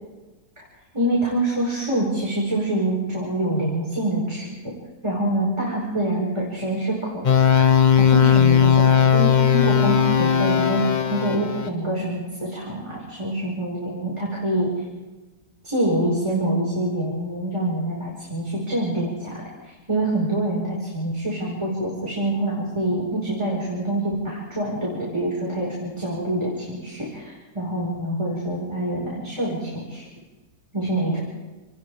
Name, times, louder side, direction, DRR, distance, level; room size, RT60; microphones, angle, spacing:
voice 1, 0.9-4.5 5.0-7.2 7.6-10.8 11.1-14.7 15.6-30.0 30.7-31.2, right 1 dB, 15° right, -5 dB, 5.3 m, -26 dB
sound 1, 7.2-11.7, left 8 dB, 55° left, 0.5 m, -17 dB
28.5 x 20.0 x 5.0 m, 1.2 s
omnidirectional pair, 1.8 m